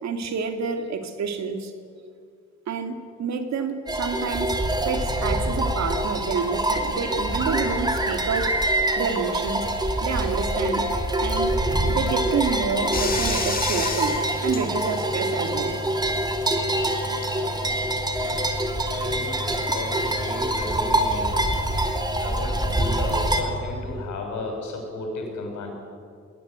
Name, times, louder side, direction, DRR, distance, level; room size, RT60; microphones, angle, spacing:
voice 1, 0.0-1.7 2.7-8.6 9.0-10.9 11.2-11.6 11.9-15.8, right 5 dB, 65° right, 2.5 m, -28 dB
sound 1, 3.9-23.4, right 1 dB, 15° right, 3.1 m, -25 dB
sound 2, 11.5-20.3, left 1 dB, 50° left, 5.7 m, -44 dB
Bathtub (filling or washing), 12.9-24.1, left 2 dB, 30° left, 3.8 m, -34 dB
voice 2, 18.9-21.4 22.2-25.7, left 2 dB, 70° left, 7.1 m, -34 dB
21.0 x 18.5 x 9.6 m
cardioid pair, 90°, 30 cm